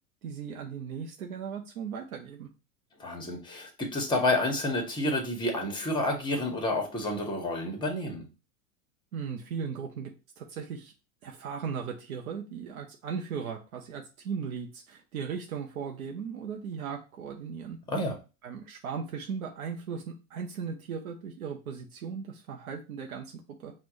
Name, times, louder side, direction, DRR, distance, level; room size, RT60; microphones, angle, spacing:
voice 1, 0.2-2.5 9.1-10.9 11.2-17.8 18.4-23.7, right 6 dB, 85° right, 2 dB, 0.8 m, -37 dB
voice 2, 3.0-8.3 17.9-18.2, left 1 dB, 10° left, 3 dB, 1.3 m, -29 dB
5.4 x 2.5 x 3.1 m, 0.31 s
hypercardioid pair, 110°, 42 cm